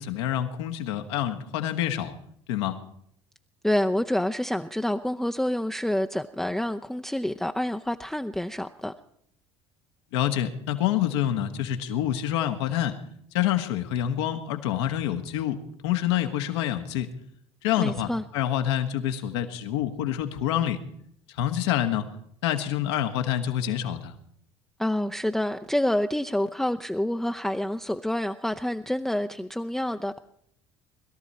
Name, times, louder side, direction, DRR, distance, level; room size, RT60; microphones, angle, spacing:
voice 1, 0.0-2.1 2.5-2.8 10.1-12.9 13.3-17.1 17.6-20.8 21.3-22.1 22.4-24.1, left 11 dB, 75° left, 1.6 m, -27 dB
voice 2, 3.6-8.9 17.8-18.2 24.8-30.2, left 1 dB, ahead, 0.7 m, -27 dB
22.0 x 13.5 x 4.3 m
hypercardioid pair, 65°, 14 cm